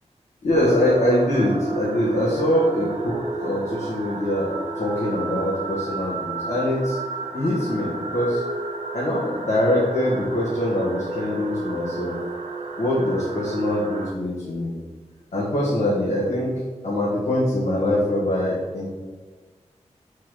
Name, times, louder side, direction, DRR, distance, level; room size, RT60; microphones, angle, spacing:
voice 1, 0.4-7.0 7.3-8.4 8.9-12.2 12.8-14.7 15.3-16.5 16.8-18.9, left 1 dB, 75° left, -7 dB, 1.8 m, -23 dB
sound 1, 0.5-14.1, right 3 dB, 80° right, 0.9 m, -32 dB
6.2 x 5.9 x 3.9 m, 1.4 s
wide cardioid pair, 65°, 12 cm